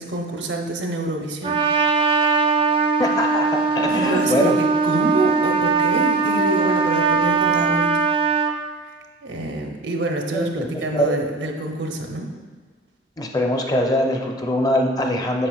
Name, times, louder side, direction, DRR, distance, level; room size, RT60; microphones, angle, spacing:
voice 1, 0.0-1.6 3.9-8.0 9.2-12.3, right 2 dB, 80° right, 2 dB, 0.8 m, -26 dB
Trumpet, 1.4-8.6, right 4 dB, 30° right, 0.4 m, -20 dB
voice 2, 3.0-4.6 10.3-11.2 13.2-15.5, left 1 dB, 20° left, 2 dB, 0.6 m, -22 dB
7.7 x 6.6 x 2.3 m, 1.5 s
head